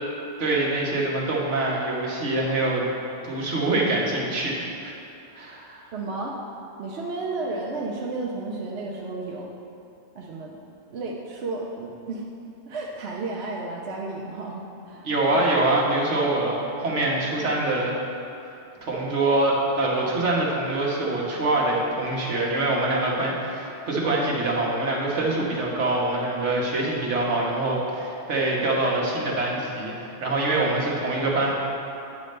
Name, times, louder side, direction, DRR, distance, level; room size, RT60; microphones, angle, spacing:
voice 1, 0.4-2.8 3.2-4.9 5.3-5.9 15.0-18.0 18.8-31.5, right 2 dB, 85° right, -3 dB, 1.5 m, -24 dB
voice 2, 5.9-6.4 6.8-9.5 10.1-10.6 10.9-12.3 12.6-15.1 15.3-15.5, right 3 dB, 70° right, -2 dB, 1.0 m, -32 dB
9.3 x 3.2 x 6.6 m, 2.7 s
omnidirectional pair, 1.2 m